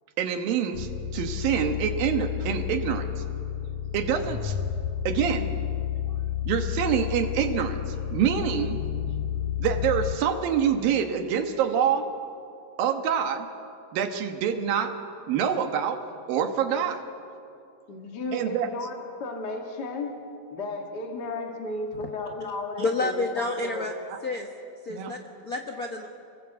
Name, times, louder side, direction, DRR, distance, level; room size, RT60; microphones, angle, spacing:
voice 1, 0.2-3.1 3.9-4.6 5.0-5.5 6.5-8.8 9.6-12.1 12.8-13.5 13.9-15.0 15.3-17.0 18.3-18.7 24.1-24.2 24.9-25.1, right 8 dB, 80° right, 6 dB, 3.2 m, -26 dB
sound 1, 0.7-10.2, left 10 dB, 65° left, 2.2 m, -31 dB
voice 2, 17.9-20.1 20.5-23.9, left 2 dB, 30° left, 2 dB, 2.4 m, -34 dB
voice 3, 22.8-23.9 24.2-24.5 24.8-26.1, left 2 dB, 80° left, 2 dB, 0.8 m, -29 dB
28.5 x 20.0 x 8.2 m, 2.6 s
omnidirectional pair, 4.1 m